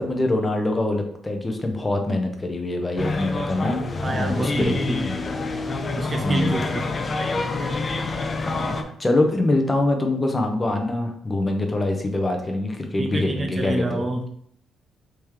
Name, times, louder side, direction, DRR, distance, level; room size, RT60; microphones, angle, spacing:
voice 1, 0.0-4.8 5.0-5.2 6.2-6.6 8.1-14.0, left 2 dB, 20° left, 3 dB, 0.8 m, -24 dB
sound 1, 3.0-8.8, left 3 dB, 35° left, 0.5 m, -27 dB
voice 2, 4.0-5.0 6.0-6.9 13.0-14.3, right 2 dB, 30° right, 5 dB, 0.5 m, -27 dB
3.6 x 3.0 x 4.8 m, 0.67 s
cardioid pair, 90°, 0 cm